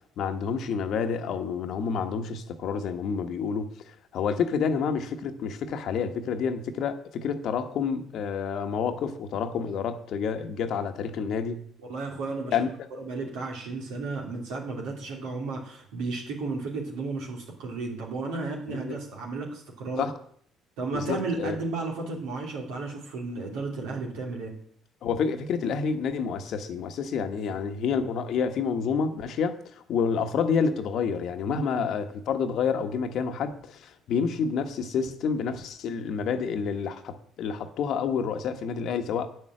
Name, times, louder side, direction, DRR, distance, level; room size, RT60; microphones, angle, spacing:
voice 1, 0.2-3.7 4.1-11.6 12.5-12.7 18.7-19.0 20.0-20.1 20.9-21.5 25.0-29.6 29.9-33.8 34.1-39.3, left 6 dB, 65° left, 8 dB, 1.2 m, -28 dB
voice 2, 11.8-12.7 13.0-20.0 20.8-24.5 27.5-27.6 31.5-31.9, right 3 dB, 75° right, 0 dB, 2.9 m, -33 dB
8.9 x 6.7 x 7.6 m, 0.63 s
hypercardioid pair, 60°, 0 cm